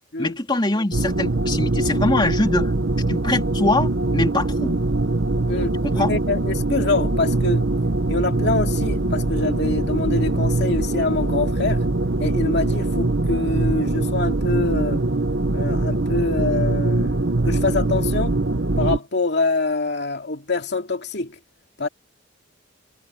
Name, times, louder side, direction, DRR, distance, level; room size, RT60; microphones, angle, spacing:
voice 1, 0.2-2.7 3.1-4.8 5.8-6.1, left 2 dB, 20° left, 3.0 m, -23 dB
sound 1, 0.9-19.0, right 2 dB, 60° right, 1.0 m, -22 dB
voice 2, 5.5-7.7 8.1-11.8 12.2-15.1 15.5-18.4 18.8-21.3 21.8-21.9, left 3 dB, 60° left, 2.6 m, -25 dB
head